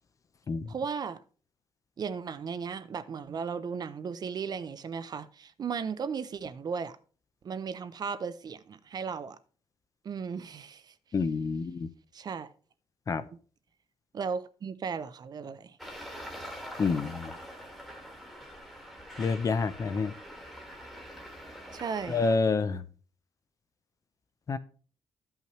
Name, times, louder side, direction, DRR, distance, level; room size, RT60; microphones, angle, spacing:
voice 1, 0.7-1.2 2.0-7.0 7.4-9.4 10.0-10.9 12.1-12.5 14.1-15.8 21.7-22.3, right 6 dB, 40° right, 0.5 m, -36 dB
voice 2, 11.1-11.9 13.1-13.2 16.8-17.3 19.2-20.1 22.1-22.8 24.5-24.6, left 4 dB, 35° left, 0.5 m, -28 dB
Traffic noise roadway noise, 15.8-22.4, equal, ahead, 1.4 m, -44 dB
13.5 x 5.6 x 3.0 m
wide cardioid pair, 155°, 10 cm